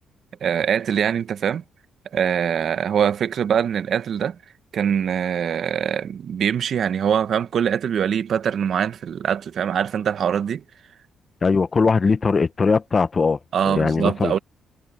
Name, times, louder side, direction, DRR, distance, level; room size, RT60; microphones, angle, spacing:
voice 1, 0.4-1.6 2.1-4.4 4.7-10.6 13.5-14.4, right 8 dB, 60° right, 1.1 m, -23 dB
voice 2, 11.4-13.4 13.6-14.4, left 4 dB, 35° left, 0.9 m, -20 dB
cardioid pair, 90°, 0 cm